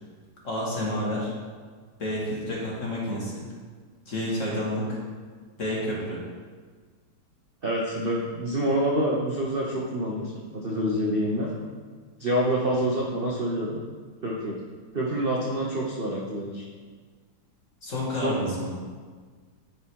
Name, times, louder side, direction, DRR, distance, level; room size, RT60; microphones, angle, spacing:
voice 1, 0.4-1.3 2.0-3.4 4.1-5.0 5.6-6.2 17.8-18.7, left 1 dB, 35° left, -5 dB, 2.1 m, -29 dB
voice 2, 7.6-11.5 12.2-13.8 14.2-14.5 14.9-16.7 18.1-18.4, equal, 65° right, -3 dB, 0.5 m, -27 dB
10.5 x 5.0 x 4.6 m, 1.5 s
omnidirectional pair, 2.4 m